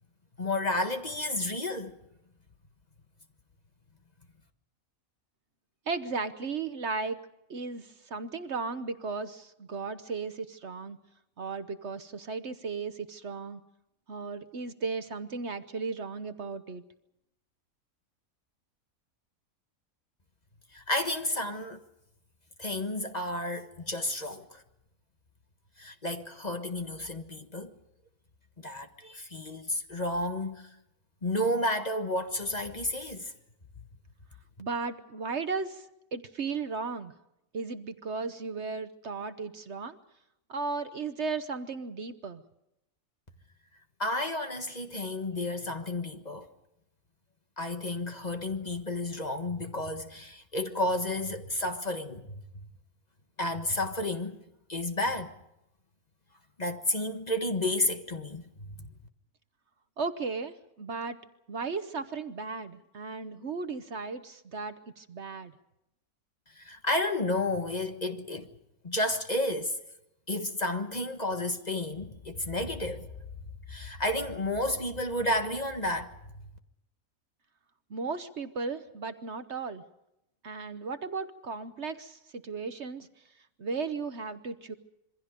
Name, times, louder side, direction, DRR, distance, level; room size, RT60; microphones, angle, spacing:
voice 1, 0.4-2.0 20.7-21.8 22.6-24.6 25.8-27.7 28.6-30.7 31.2-33.3 44.0-46.5 47.6-52.6 53.4-54.4 54.7-55.3 56.6-58.9 66.6-68.5 68.8-69.8 70.3-73.1 73.7-76.1, left 1 dB, 30° left, 1.6 m, -31 dB
voice 2, 5.9-7.2 7.5-11.0 11.4-13.6 14.1-16.8 34.6-37.1 37.5-40.0 40.5-42.4 60.0-61.2 61.5-65.5 77.9-79.8 80.4-83.1 83.6-84.7, right 4 dB, 55° right, 1.2 m, -35 dB
27.0 x 23.5 x 5.2 m
omnidirectional pair, 1.5 m